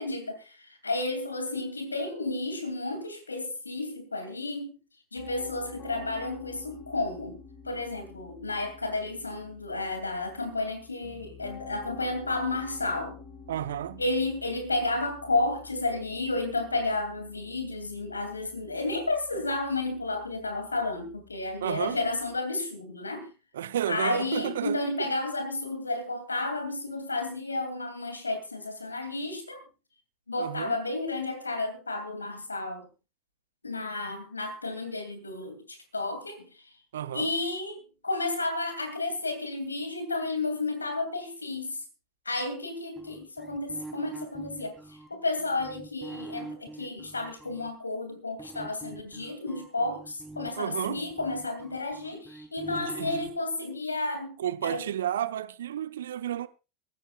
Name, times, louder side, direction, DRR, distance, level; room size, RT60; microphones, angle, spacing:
voice 1, 0.0-4.8 5.1-7.4 7.6-13.2 14.0-23.3 23.9-29.6 30.3-32.9 33.6-36.5 37.1-41.8 42.2-54.9, left 2 dB, 80° left, 2.7 m, -32 dB
Piano, 5.2-22.3, left 5 dB, 40° left, 6.4 m, -49 dB
voice 2, 13.5-14.0 21.6-22.0 23.5-25.1 30.4-30.8 36.9-37.3 50.6-51.0 52.7-53.3 54.4-56.5, right 11 dB, 65° right, 0.7 m, -32 dB
sound 1, 43.0-47.7 48.4-53.3, right 2 dB, 5° right, 3.4 m, -44 dB
23.5 x 13.5 x 2.4 m
figure-of-eight pair, 80°, 0 cm